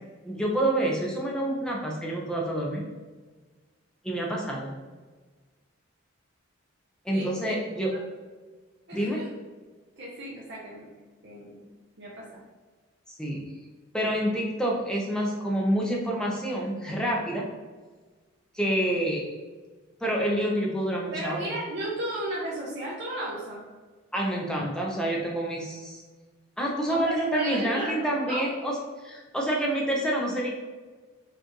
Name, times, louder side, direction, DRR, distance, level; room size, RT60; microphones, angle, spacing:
voice 1, 0.2-2.9 4.0-4.7 7.0-8.0 8.9-9.2 13.1-13.4 13.9-17.4 18.5-19.3 20.0-21.5 24.1-26.0 26.6-30.5, right 1 dB, 5° left, -2 dB, 0.5 m, -28 dB
voice 2, 7.1-7.5 8.9-9.3 10.0-10.8 11.2-11.5 12.0-12.4 21.1-23.6 26.9-28.4, right 1 dB, 50° right, -6 dB, 0.7 m, -34 dB
4.4 x 2.5 x 2.9 m, 1.4 s
head